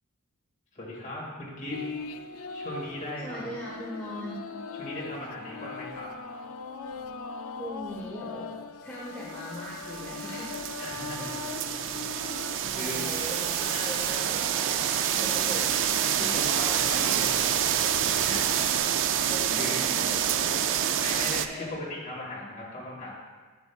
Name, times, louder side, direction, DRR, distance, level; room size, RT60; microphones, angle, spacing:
voice 1, 0.7-1.8 2.5-3.5 4.8-6.1 10.8-11.2 12.7-13.0 16.1-18.4 19.6-19.8 21.0-23.1, left 1 dB, 35° left, -4 dB, 2.0 m, -38 dB
sound 1, 1.7-12.6, left 5 dB, 70° left, 0.4 m, -40 dB
voice 2, 3.2-4.4 7.6-8.5 8.8-10.5 11.2-11.4 11.9-12.1 12.6-14.8 15.1-15.7 16.1-16.3 19.2-21.0 21.5-21.7, equal, 5° left, -8 dB, 1.4 m, -39 dB
sound 2, 9.4-21.5, right 9 dB, 60° right, 0.4 m, -28 dB
sound 3, 12.5-18.8, right 6 dB, 75° right, 0.7 m, -36 dB
10.5 x 7.5 x 2.3 m, 1.4 s
head